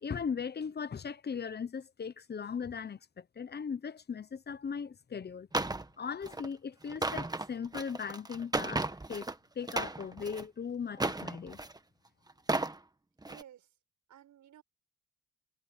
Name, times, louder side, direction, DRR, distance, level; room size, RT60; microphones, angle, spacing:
voice 1, 0.0-5.5 6.0-9.3 9.5-11.6, left 6 dB, 35° left, 1.0 m, -38 dB
sound 1, 5.5-5.8 6.2-6.5 6.9-9.3 9.6-10.4 10.9-11.8 12.3-12.8 13.2-13.4, right 2 dB, 15° right, 1.5 m, -34 dB
voice 2, 13.2-13.7 14.1-14.6, right 10 dB, 70° right, 5.8 m, -55 dB
cardioid pair, 90°, 30 cm